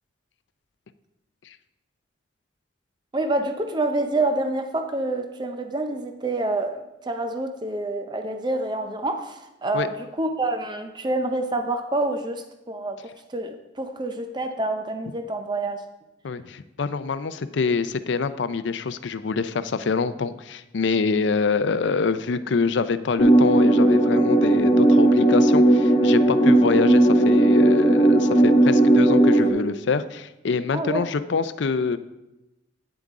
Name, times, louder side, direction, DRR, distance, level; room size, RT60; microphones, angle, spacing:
voice 1, 3.1-13.0 13.3-15.8 26.4-26.6 30.7-31.0, right 2 dB, 20° right, 6 dB, 0.5 m, -27 dB
voice 2, 16.2-32.0, left 4 dB, 65° left, 13 dB, 0.4 m, -25 dB
sound 1, 23.2-29.5, right 1 dB, 30° left, 0.7 m, -16 dB
9.5 x 7.7 x 3.6 m, 0.96 s
head